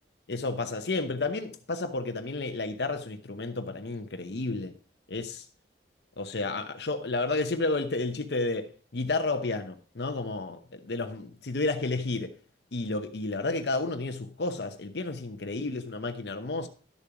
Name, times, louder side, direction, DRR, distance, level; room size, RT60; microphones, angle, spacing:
voice 1, 0.3-4.8 5.1-5.4 6.2-12.3 12.7-16.7, left 3 dB, 70° left, 0.9 m, -31 dB
11.5 x 7.0 x 4.8 m
head